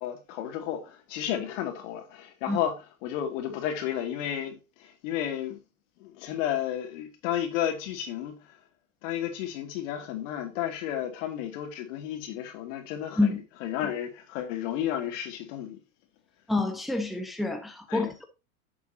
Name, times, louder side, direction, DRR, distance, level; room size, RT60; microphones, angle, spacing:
voice 1, 0.0-2.7 3.0-5.6 6.0-8.6 9.0-15.8 17.9-18.1, left 10 dB, 65° left, 2.5 m, -32 dB
voice 2, 16.5-18.2, left 2 dB, ahead, 1.1 m, -27 dB
10.5 x 6.9 x 2.8 m
supercardioid pair, 115°, 41 cm